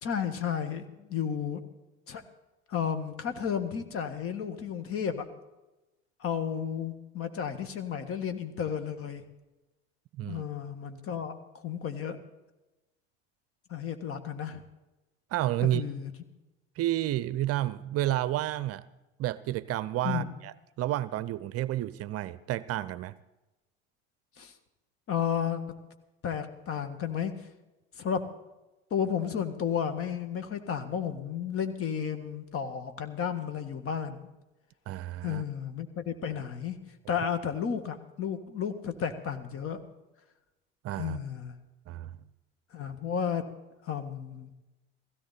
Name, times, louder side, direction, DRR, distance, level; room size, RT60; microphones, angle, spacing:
voice 1, 0.0-1.6 2.1-2.2 2.7-5.3 6.2-9.2 10.2-12.2 13.7-14.6 15.7-16.1 20.0-20.3 24.4-24.5 25.1-25.6 26.2-27.3 28.0-28.2 28.9-34.3 35.2-36.8 37.1-39.8 41.0-41.6 42.7-43.4 43.8-44.5, left 7 dB, 40° left, 9 dB, 1.8 m, -32 dB
voice 2, 15.3-15.8 16.8-18.8 19.2-23.1 34.9-35.4 40.8-41.2 41.9-42.1, right 14 dB, 45° right, 18 dB, 0.7 m, -30 dB
16.5 x 16.0 x 4.3 m, 1.0 s
hypercardioid pair, 75°, 33 cm